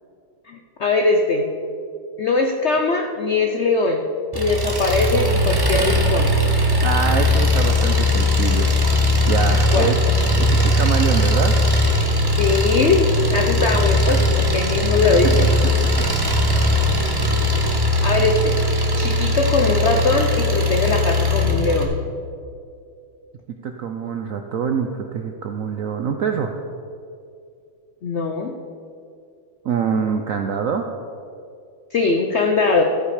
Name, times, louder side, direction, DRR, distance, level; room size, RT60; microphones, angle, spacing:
voice 1, 0.5-1.5 2.2-4.0 4.3-6.3 9.7-9.9 12.4-15.5 18.0-18.6 18.9-21.9 28.0-28.5 31.9-32.8, left 3 dB, 80° left, 3 dB, 0.6 m, -20 dB
Engine, 4.3-21.8, left 1 dB, 20° right, 0.7 m, -19 dB
voice 2, 6.8-8.7 9.3-10.0 10.3-11.5 15.4-16.1 16.4-16.7 23.6-26.5 29.6-30.8, right 6 dB, 75° right, 4 dB, 0.7 m, -25 dB
13.0 x 8.5 x 4.9 m, 2.5 s
omnidirectional pair, 2.1 m